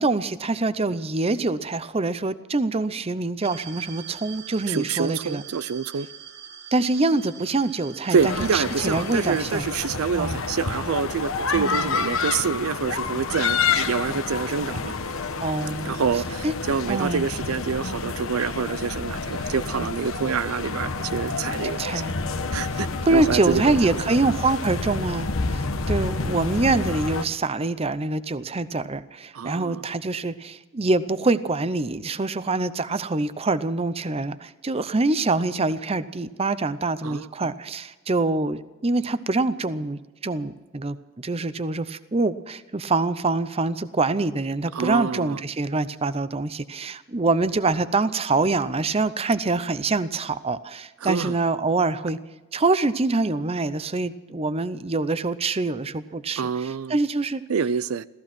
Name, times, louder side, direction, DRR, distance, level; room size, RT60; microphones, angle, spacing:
voice 1, 0.0-5.4 6.7-9.7 10.1-10.4 11.6-11.9 15.4-16.0 16.4-16.5 16.9-17.2 19.7-19.9 21.8-22.2 23.1-52.2 52.5-57.4, right 3 dB, 30° right, 14 dB, 0.6 m, -25 dB
sound 1, 3.4-9.5, right 8 dB, 55° right, 1.4 m, -43 dB
voice 2, 4.7-6.1 8.1-14.9 15.8-22.0 22.5-24.0 29.3-29.8 37.0-37.5 44.7-45.4 51.0-51.3 56.4-57.0 57.5-58.0, right 6 dB, 85° right, 17 dB, 0.5 m, -27 dB
sound 2, 8.2-27.2, left 4 dB, 75° left, 1.1 m, -29 dB
15.5 x 15.0 x 6.0 m, 1.2 s
head